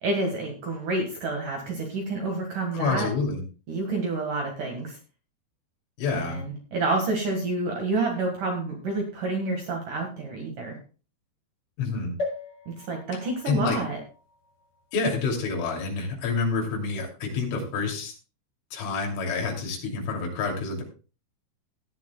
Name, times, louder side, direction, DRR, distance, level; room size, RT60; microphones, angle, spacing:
voice 1, 0.0-3.1 3.7-5.0 6.1-10.8 12.7-14.0, right 2 dB, 55° right, 2 dB, 2.6 m, -29 dB
voice 2, 2.7-3.4 6.0-6.4 11.8-12.1 13.5-13.8 14.9-18.1 18.7-20.8, left 4 dB, 80° left, 0 dB, 5.2 m, -28 dB
sound 1, 12.2-15.9 16.5-16.6 16.8-16.9, left 2 dB, 20° left, 6.8 m, -39 dB
17.5 x 10.5 x 2.3 m, 0.35 s
omnidirectional pair, 5.5 m